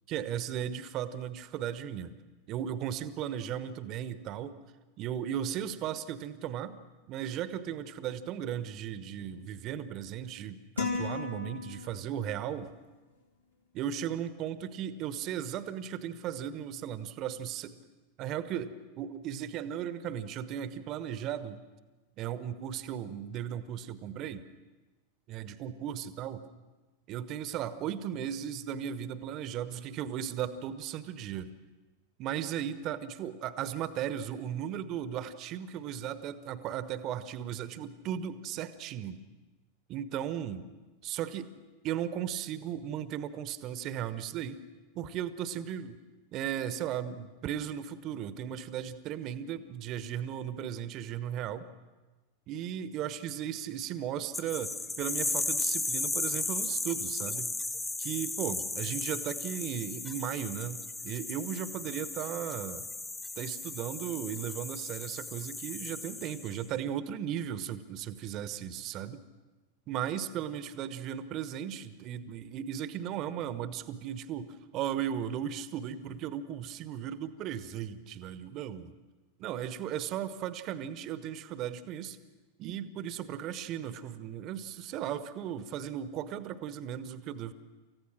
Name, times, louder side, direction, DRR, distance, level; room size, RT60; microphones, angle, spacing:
voice 1, 0.1-2.1 2.5-4.6 5.0-6.8 7.1-12.7 13.7-17.8 18.2-21.6 22.2-24.5 25.3-26.5 27.1-31.5 32.2-39.2 39.9-40.6 41.0-41.5 41.8-44.6 44.9-46.0 46.3-51.7 52.5-57.5 58.0-62.8 63.4-69.2 69.9-78.9 79.4-82.2 82.6-87.5, right 9 dB, 35° right, 13 dB, 1.1 m, -36 dB
sound 1, 10.8-12.3, left 4 dB, 85° left, 3.6 m, -35 dB
sound 2, 54.3-66.6, left 2 dB, 15° left, 1.3 m, -35 dB
28.5 x 15.0 x 6.1 m, 1.2 s
figure-of-eight pair, 90°, 0 cm